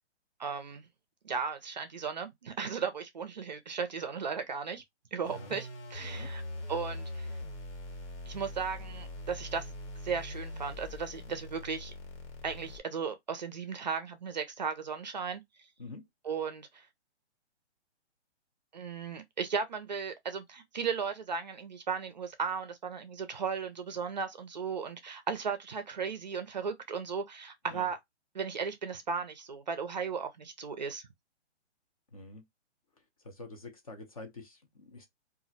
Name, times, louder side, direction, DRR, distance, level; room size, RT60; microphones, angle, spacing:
voice 1, 0.4-0.8 1.2-4.8 5.1-6.4 6.7-7.3 8.3-9.7 10.0-11.9 12.4-15.4 16.2-16.9 18.7-28.0 28.3-31.1, right 6 dB, 40° right, 0.4 m, -36 dB
sound 1, 5.2-12.8, left 1 dB, 80° left, 1.4 m, -42 dB
voice 2, 32.1-32.4 33.2-35.1, left 2 dB, 35° left, 0.5 m, -46 dB
2.4 x 2.0 x 3.8 m
hypercardioid pair, 165°, 34 cm